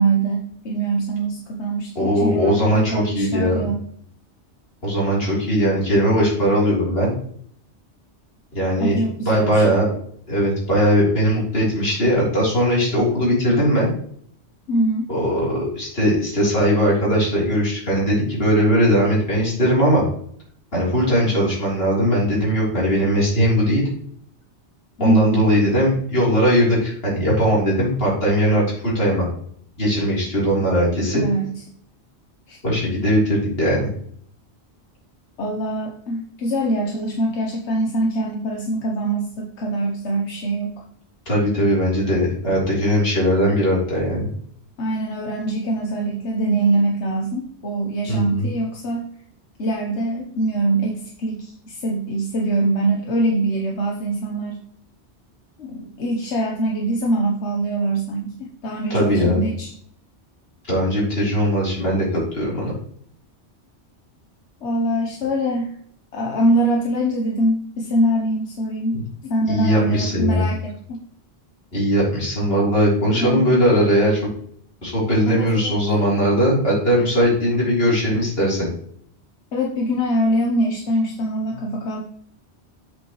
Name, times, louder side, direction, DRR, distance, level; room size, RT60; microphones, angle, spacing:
voice 1, 0.0-3.8 8.8-9.6 14.7-15.1 25.0-25.5 31.1-31.5 32.5-32.6 35.4-40.8 44.8-49.1 49.6-54.6 55.6-59.7 64.6-65.7 66.1-69.0 69.3-71.0 73.1-73.5 75.3-75.7 79.5-82.0, right 1 dB, 85° left, 0 dB, 1.3 m, -23 dB
voice 2, 2.0-3.7 4.8-7.1 8.5-9.0 9.2-10.0 10.3-13.9 15.1-20.0 20.7-23.8 25.0-29.3 29.8-31.2 32.6-33.9 41.3-44.3 48.1-48.5 58.9-59.4 60.7-62.7 68.9-69.0 69.5-70.5 71.7-74.2 74.8-78.7, equal, 60° left, -5 dB, 3.7 m, -19 dB
7.7 x 6.7 x 3.1 m, 0.64 s
omnidirectional pair, 1.1 m